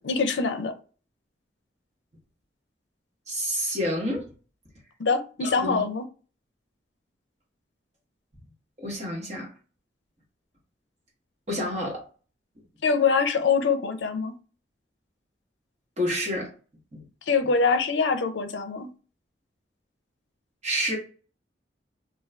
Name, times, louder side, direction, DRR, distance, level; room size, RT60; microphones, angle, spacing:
voice 1, 0.0-0.7 5.0-6.0 12.8-14.3 17.3-18.9, left 5 dB, 80° left, 0.5 m, -24 dB
voice 2, 3.3-4.3 5.4-5.8 8.8-9.5 11.5-12.1 16.0-16.5 16.9-17.0 20.6-21.0, equal, 35° right, 1.1 m, -29 dB
2.5 x 2.2 x 3.2 m
head